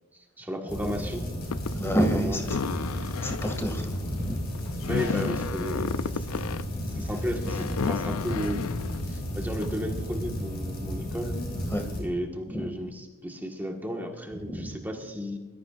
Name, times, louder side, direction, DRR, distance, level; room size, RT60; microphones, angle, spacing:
voice 1, 0.4-1.3 1.7-3.1 4.9-6.3 6.9-8.6 9.0-11.4 12.0-15.4, equal, 10° right, 1 dB, 1.6 m, -34 dB
sound 1, 0.7-12.0, equal, 45° left, 5.0 m, -33 dB
sound 2, 1.4-9.7, left 5 dB, 85° left, 0.5 m, -33 dB
voice 2, 1.7-2.6 2.9-4.4 6.7-7.0 7.9-8.1 9.4-9.5 11.7-11.9 12.5-12.7 14.4-14.7, equal, 10° left, 5 dB, 2.1 m, -30 dB
23.5 x 13.5 x 2.5 m, 1.2 s
head